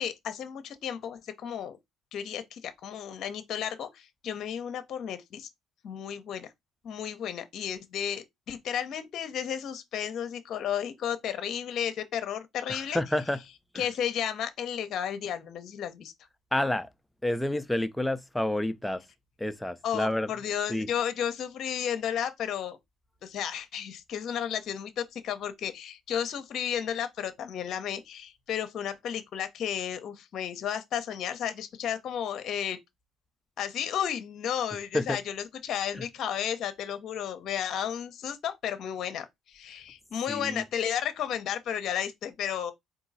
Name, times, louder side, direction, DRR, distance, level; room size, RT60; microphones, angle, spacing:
voice 1, 0.0-1.8 2.1-5.5 5.8-6.5 6.8-13.0 13.7-16.1 19.8-22.8 23.2-32.8 33.6-42.7, left 9 dB, 60° left, 0.8 m, -33 dB
voice 2, 12.7-13.4 13.7-13.9 16.5-16.9 17.2-19.0 19.4-20.3 20.7-20.9 34.9-35.2 35.9-36.0 40.3-40.6, left 1 dB, 10° left, 0.6 m, -29 dB
3.8 x 2.7 x 4.0 m
hypercardioid pair, 60°, 0 cm